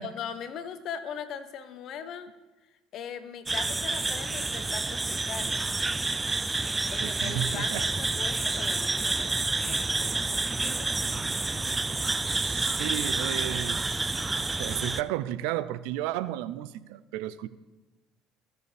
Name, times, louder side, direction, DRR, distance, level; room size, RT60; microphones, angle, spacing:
voice 1, 0.0-2.3 2.9-5.7 6.9-10.9, left 7 dB, 60° left, 10 dB, 1.0 m, -40 dB
sound 1, 3.5-15.0, right 3 dB, 20° right, 0.4 m, -29 dB
voice 2, 7.0-7.9 11.6-11.7 12.4-13.8 14.5-17.5, right 13 dB, 80° right, 16 dB, 0.4 m, -33 dB
16.0 x 6.8 x 3.4 m, 1.1 s
supercardioid pair, 75°, 0 cm